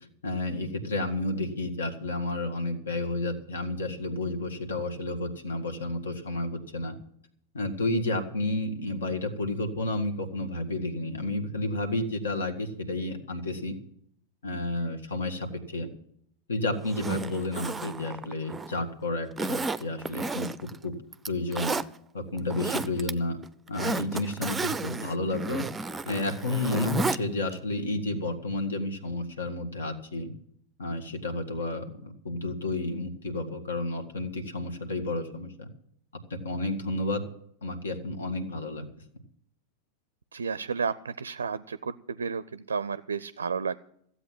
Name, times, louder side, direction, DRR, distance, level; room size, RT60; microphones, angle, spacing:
voice 1, 0.2-6.9 7.5-13.7 14.4-15.9 16.5-20.9 21.3-21.8 22.1-23.4 23.7-25.6 26.0-30.3 30.8-35.7 36.3-37.2 37.6-38.8, left 2 dB, 70° left, 5 dB, 1.7 m, -31 dB
Zipper (clothing), 16.8-18.8 19.4-20.8 21.1-21.9 22.4-23.1 23.4-27.2 27.5-27.6, right 3 dB, 15° right, 0.5 m, -32 dB
voice 2, 40.3-43.8, right 5 dB, 70° right, 17 dB, 0.4 m, -32 dB
15.0 x 8.2 x 7.5 m, 0.70 s
figure-of-eight pair, 90°, 0 cm